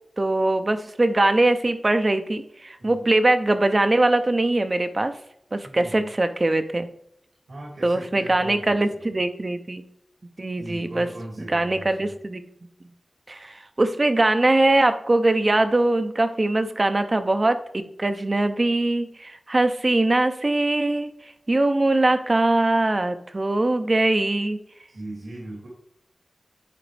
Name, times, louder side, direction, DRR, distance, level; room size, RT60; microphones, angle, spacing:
voice 1, 0.2-5.1 5.5-6.9 7.8-9.8 10.4-11.1 11.5-12.4 13.3-21.1 21.5-24.6, right 2 dB, 35° right, 9 dB, 0.6 m, -22 dB
voice 2, 5.6-6.1 7.5-9.1 10.6-12.1 24.9-25.7, right 1 dB, 80° right, -3 dB, 2.4 m, -38 dB
9.9 x 4.2 x 3.3 m, 0.73 s
wide cardioid pair, 95°, 0 cm